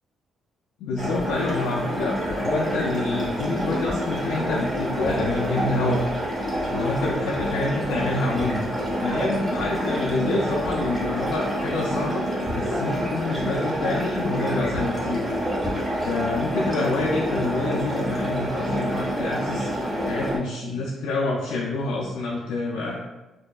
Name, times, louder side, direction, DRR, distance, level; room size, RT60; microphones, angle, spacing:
voice 1, 0.8-6.0 6.7-8.6 9.0-12.3 12.5-15.3 16.0-19.7 20.1-23.0, left 2 dB, 85° left, -2 dB, 0.4 m, -27 dB
sound 1, 1.0-20.4, equal, 10° right, 1.3 m, -27 dB
4.4 x 2.7 x 2.4 m, 1.1 s
cardioid pair, 90°, 0 cm